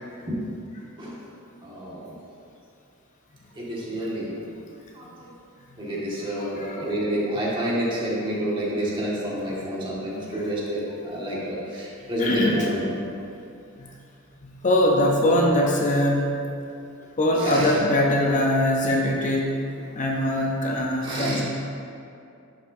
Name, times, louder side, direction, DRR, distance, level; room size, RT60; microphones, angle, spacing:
voice 1, 1.6-2.1 3.5-4.3 4.9-5.3 5.8-12.9 17.4-17.7 21.0-21.4, equal, 25° right, -7 dB, 1.7 m, -28 dB
voice 2, 6.2-6.9 9.5-9.6 10.3-10.5 12.2-12.7 13.8-14.0 14.4-16.3 17.2-19.5 19.9-21.4, left 1 dB, 35° left, 0 dB, 0.6 m, -22 dB
11.0 x 5.6 x 2.6 m, 2.6 s
head